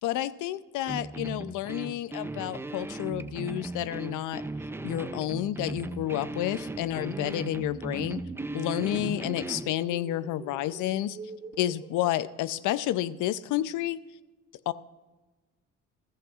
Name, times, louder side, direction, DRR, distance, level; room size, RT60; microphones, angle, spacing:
voice 1, 0.0-4.4 4.8-8.2 8.5-11.2 11.6-14.0 14.7-14.8, left 13 dB, 90° left, 16 dB, 0.5 m, -30 dB
sound 1, 0.9-9.7, right 2 dB, 10° right, 0.4 m, -37 dB
sound 2, 7.8-13.1, right 2 dB, 25° right, 1.2 m, -43 dB
14.5 x 14.0 x 2.4 m, 1.2 s
cardioid pair, 90°, 30 cm